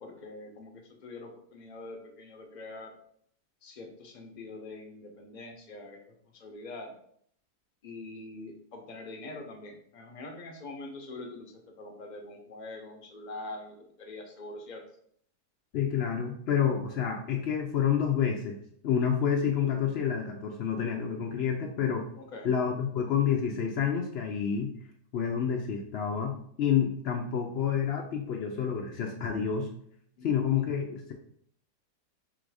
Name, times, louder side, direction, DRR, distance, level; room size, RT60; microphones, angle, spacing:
voice 1, 0.0-2.9 3.6-6.0 6.3-6.9 7.8-14.8 22.2-22.5 30.2-30.5, left 2 dB, 40° left, 2 dB, 0.6 m, -44 dB
voice 2, 15.7-18.6 18.8-22.1 22.4-24.7 25.1-29.7 30.2-31.1, left 8 dB, 85° left, 2 dB, 0.5 m, -28 dB
3.9 x 2.6 x 4.7 m, 0.64 s
omnidirectional pair, 1.7 m